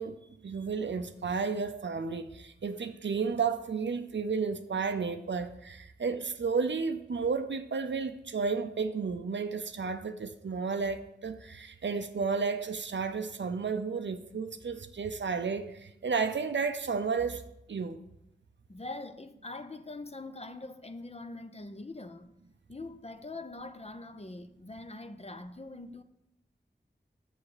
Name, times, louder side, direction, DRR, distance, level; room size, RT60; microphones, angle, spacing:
voice 1, 0.0-17.4 17.7-18.0, right 5 dB, 80° right, 0.6 m, -32 dB
voice 2, 18.7-22.3 22.7-26.0, left 2 dB, 35° left, 0.7 m, -43 dB
7.3 x 7.0 x 4.9 m
cardioid pair, 40°, 19 cm